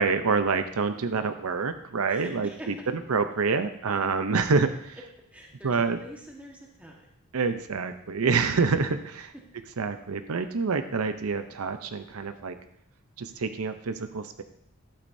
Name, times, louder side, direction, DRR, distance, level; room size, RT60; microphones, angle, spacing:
voice 1, 0.0-2.5 3.1-5.0 5.6-6.0 7.3-9.0 9.8-12.5 13.2-14.4, right 4 dB, 90° right, 9 dB, 0.6 m, -27 dB
voice 2, 2.1-2.9 5.3-7.1 8.7-8.9, equal, 5° right, -1 dB, 1.3 m, -44 dB
11.5 x 8.7 x 2.7 m, 0.72 s
head